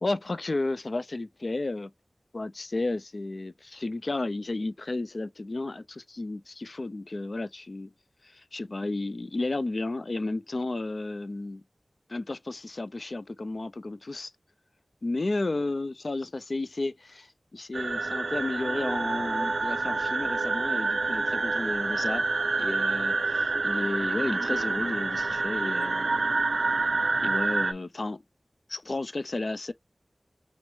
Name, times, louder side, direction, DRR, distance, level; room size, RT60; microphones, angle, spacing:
voice 1, 0.0-1.9 2.3-7.9 8.2-11.6 12.1-14.3 15.0-22.2 22.5-26.5 27.2-28.2 28.7-29.7, left 2 dB, 65° left, 0.4 m, -33 dB
sound 1, 17.7-27.7, right 3 dB, 85° right, 0.3 m, -27 dB
6.1 x 2.1 x 3.1 m
wide cardioid pair, 65°, 0 cm